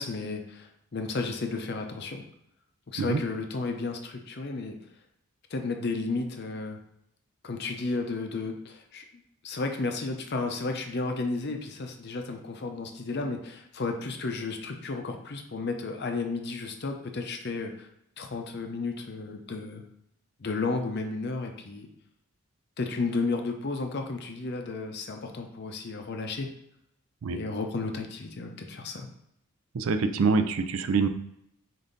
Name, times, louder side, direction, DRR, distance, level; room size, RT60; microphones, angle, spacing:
voice 1, 0.0-2.2 2.9-4.8 5.5-6.8 7.4-9.0 9.4-17.9 18.2-19.8 20.4-21.9 22.8-26.5 27.3-29.1, left 3 dB, 50° left, 4 dB, 0.6 m, -33 dB
voice 2, 29.7-31.1, right 4 dB, 70° right, 9 dB, 0.4 m, -25 dB
5.3 x 2.6 x 3.8 m, 0.77 s
head